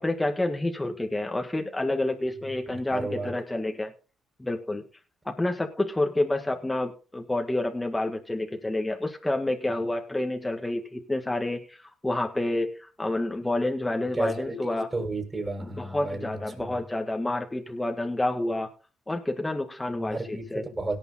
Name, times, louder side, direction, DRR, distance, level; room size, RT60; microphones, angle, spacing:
voice 1, 0.0-3.9 4.4-4.8 5.3-14.9 15.8-18.7 19.1-20.6, left 2 dB, 10° left, 3 dB, 1.7 m, -29 dB
voice 2, 2.5-3.3 14.1-16.8 19.9-21.0, right 2 dB, 20° right, 3 dB, 6.3 m, -33 dB
17.5 x 6.9 x 4.2 m, 0.36 s
cardioid pair, 90°, 0 cm